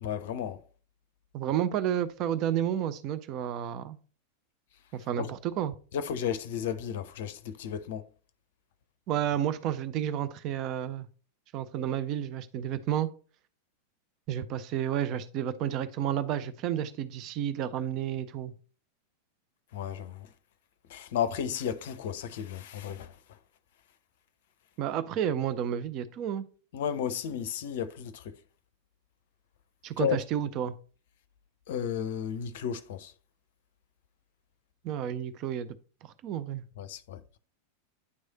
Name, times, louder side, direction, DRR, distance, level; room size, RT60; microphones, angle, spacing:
voice 1, 0.0-0.6 5.2-5.3 5.9-8.1 19.7-20.3 20.9-23.2 26.7-28.4 30.0-30.2 31.7-33.1 36.8-37.4, left 8 dB, 55° left, 0.5 m, -33 dB
voice 2, 1.3-4.0 4.9-5.8 9.1-11.1 11.5-13.1 14.3-18.5 24.8-26.5 29.8-30.7 34.8-35.7 36.0-36.6, right 10 dB, 40° right, 0.5 m, -31 dB
9.5 x 3.2 x 3.9 m
figure-of-eight pair, 90°, 0 cm